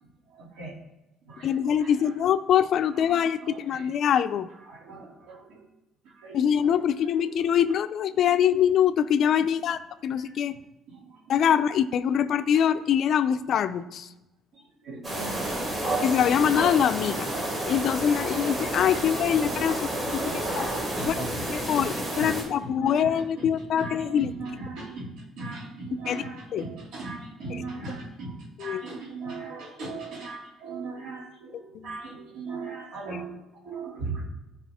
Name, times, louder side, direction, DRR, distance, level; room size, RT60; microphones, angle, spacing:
voice 1, 0.3-0.7 1.3-2.1 2.9-3.9 4.6-5.6 6.0-7.6 8.1-8.2 9.3-9.4 10.1-10.3 10.9-11.5 12.5-12.6 14.5-15.8 18.9-19.1 19.4-21.9 22.1-34.3, right 3 dB, 65° right, -4 dB, 2.8 m, -39 dB
voice 2, 1.4-4.5 6.3-10.6 11.3-14.1 16.0-17.3 17.7-20.7 21.1-21.2 21.5-24.3 26.1-26.2 26.5-26.6 27.5-27.6 28.6-28.9 31.7-32.0, left 9 dB, 45° left, 11 dB, 0.4 m, -24 dB
sound 1, 15.0-22.4, right 1 dB, 25° right, 2.4 m, -30 dB
14.0 x 4.9 x 3.6 m, 1.0 s
cardioid pair, 175°, 0 cm